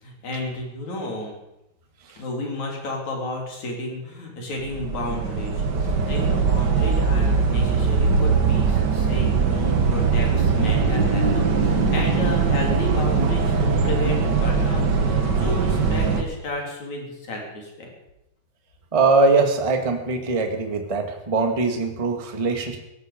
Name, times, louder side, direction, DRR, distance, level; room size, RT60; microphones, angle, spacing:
voice 1, 0.0-1.3 2.2-17.9, left 1 dB, 60° left, 0 dB, 4.8 m, -32 dB
sound 1, 4.6-16.2, right 5 dB, 55° right, 1.2 m, -21 dB
voice 2, 18.9-22.8, right 3 dB, 15° right, 5 dB, 1.1 m, -21 dB
17.5 x 14.5 x 5.2 m, 0.90 s
omnidirectional pair, 3.8 m